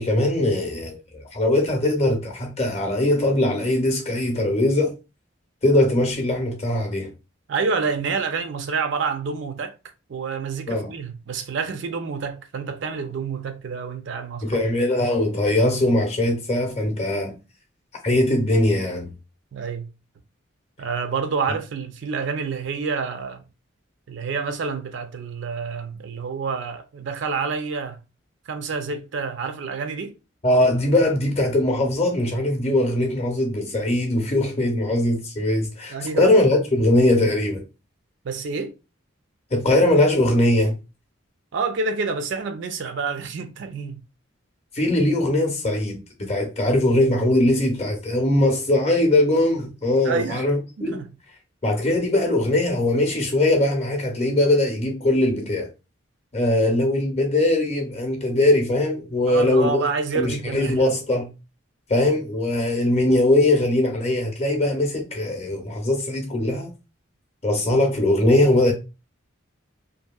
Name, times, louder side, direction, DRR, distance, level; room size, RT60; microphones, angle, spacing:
voice 1, 0.0-4.9 5.6-7.1 10.7-10.9 14.4-17.4 18.0-19.1 30.4-37.6 39.5-40.7 44.7-51.0 51.6-55.7 56.3-59.9 60.1-61.3 61.9-66.7 67.4-68.7, left 1 dB, 30° left, 0.6 m, -21 dB
voice 2, 7.5-9.7 10.1-14.6 19.5-19.9 20.8-23.4 24.1-28.0 28.5-30.1 35.9-36.4 38.2-38.7 41.5-44.0 50.0-50.4 50.8-51.1 59.2-60.9, right 5 dB, 60° right, 0.4 m, -28 dB
2.7 x 2.6 x 2.2 m
head